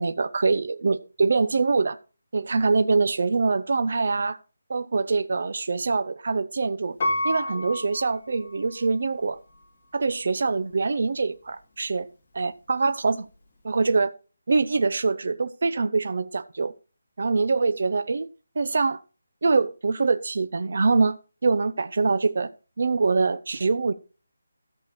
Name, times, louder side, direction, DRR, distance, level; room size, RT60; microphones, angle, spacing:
voice 1, 0.0-2.0 2.3-4.4 4.7-7.0 7.2-9.4 9.9-12.1 12.3-13.3 13.6-14.1 14.5-16.7 17.2-18.3 18.6-19.0 19.4-21.2 21.4-22.5 22.8-23.9, right 4 dB, 45° right, 0.7 m, -24 dB
Piano, 7.0-9.0 9.5-9.6, left 1 dB, 25° left, 2.4 m, -30 dB
13.5 x 6.6 x 4.2 m
figure-of-eight pair, 180°, 0 cm